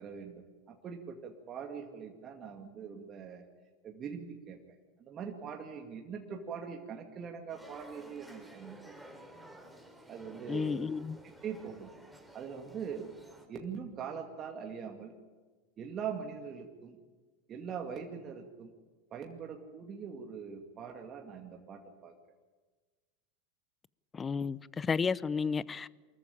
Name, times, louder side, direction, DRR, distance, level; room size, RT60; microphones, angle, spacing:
voice 1, 0.0-3.5 3.8-4.6 5.0-9.0 10.1-10.9 11.2-11.9 12.3-13.1 13.5-15.1 15.8-17.0 17.5-18.7 19.1-22.1, right 6 dB, 35° right, 2.3 m, -42 dB
sound 1, 7.5-13.5, right 1 dB, ahead, 4.5 m, -53 dB
voice 2, 10.5-11.2 24.1-25.9, left 5 dB, 20° left, 0.6 m, -32 dB
24.0 x 14.0 x 10.0 m
hypercardioid pair, 95°, 0 cm